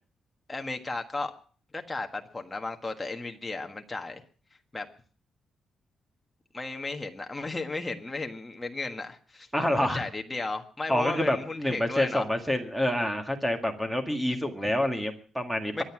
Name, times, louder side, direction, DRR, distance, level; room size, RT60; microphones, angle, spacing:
voice 1, 0.5-1.3 1.7-4.2 4.7-4.9 6.5-9.5 9.8-12.3 15.7-15.8, left 3 dB, 15° left, 1.5 m, -34 dB
voice 2, 9.5-10.0 10.9-15.8, left 1 dB, 5° right, 2.0 m, -27 dB
23.0 x 9.6 x 6.1 m
cardioid pair, 170°, 0 cm